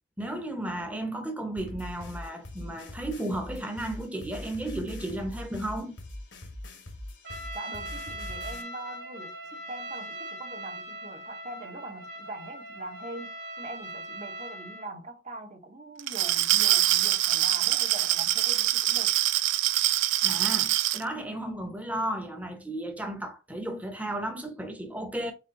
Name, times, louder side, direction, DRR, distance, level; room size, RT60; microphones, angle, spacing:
voice 1, 0.2-6.0 20.2-25.3, right 1 dB, 10° right, 0.7 m, -34 dB
sound 1, 1.6-8.6, left 1 dB, 65° left, 0.9 m, -42 dB
Trumpet, 7.2-14.9, right 1 dB, 55° right, 1.1 m, -40 dB
voice 2, 7.5-19.1, right 2 dB, 35° right, 0.8 m, -42 dB
Glass, 16.0-21.0, right 14 dB, 75° right, 0.3 m, -24 dB
4.2 x 3.8 x 2.6 m
head